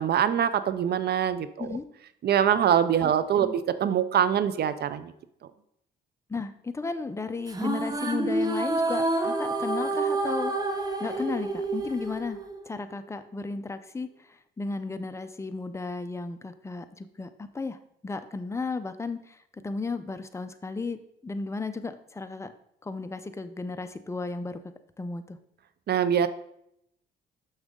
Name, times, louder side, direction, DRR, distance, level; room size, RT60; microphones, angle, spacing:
voice 1, 0.0-1.7 2.2-5.1 25.9-26.3, right 9 dB, 55° right, 13 dB, 0.5 m, -24 dB
voice 2, 6.3-10.5 11.0-17.8 18.0-19.4 19.6-22.5 22.8-24.6 25.0-25.4, left 3 dB, 15° left, 9 dB, 0.5 m, -34 dB
sound 1, 7.5-13.0, right 2 dB, 20° right, 1.0 m, -29 dB
6.3 x 6.2 x 3.7 m, 0.75 s
cardioid pair, 90°, 20 cm